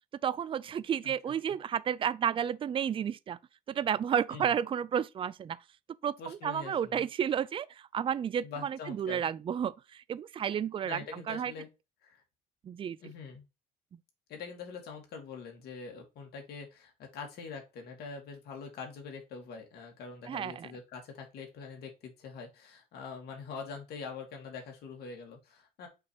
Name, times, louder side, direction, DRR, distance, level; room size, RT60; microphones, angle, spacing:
voice 1, 0.2-3.4 3.7-5.6 6.0-11.5 12.6-13.0 20.3-20.7, right 8 dB, 30° right, 0.4 m, -32 dB
voice 2, 1.0-1.6 4.3-4.5 6.2-7.0 8.4-9.2 10.8-11.7 12.0-12.2 13.0-13.4 14.3-25.9, left 5 dB, 70° left, 2.3 m, -44 dB
6.8 x 2.9 x 4.8 m
cardioid pair, 110°, 17 cm